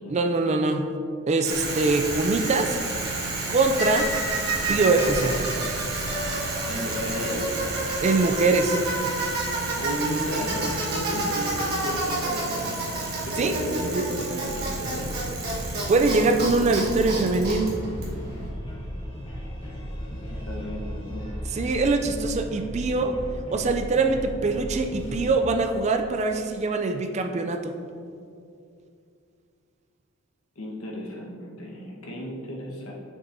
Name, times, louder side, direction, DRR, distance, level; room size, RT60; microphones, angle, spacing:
voice 1, 0.1-1.0 1.3-2.8 3.5-4.1 4.7-5.4 8.0-8.8 13.4-14.0 15.9-17.7 21.5-23.2 23.5-27.7, right 3 dB, 30° right, 6 dB, 0.3 m, -23 dB
Bicycle, 1.4-18.5, right 2 dB, 45° right, 1.4 m, -29 dB
voice 2, 6.6-7.6 9.8-12.8 13.2-15.2 19.3-21.3 30.5-32.9, equal, 80° left, -2 dB, 1.3 m, -34 dB
sound 1, 14.4-25.3, equal, 25° left, 1.4 m, -36 dB
7.2 x 6.1 x 2.7 m, 2.4 s
head